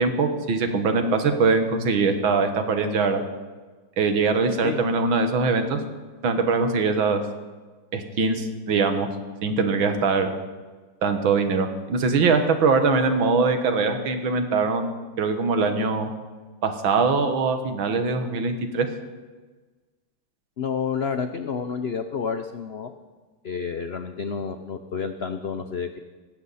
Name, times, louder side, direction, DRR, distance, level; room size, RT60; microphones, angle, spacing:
voice 1, 0.0-3.2 4.0-5.8 6.2-7.2 7.9-9.1 9.4-10.3 11.0-14.9 15.2-16.1 16.6-18.9, right 4 dB, 85° right, 7 dB, 2.2 m, -22 dB
voice 2, 20.6-22.9 23.4-26.0, left 6 dB, 85° left, 8 dB, 0.5 m, -29 dB
18.0 x 15.5 x 4.2 m, 1.3 s
omnidirectional pair, 2.1 m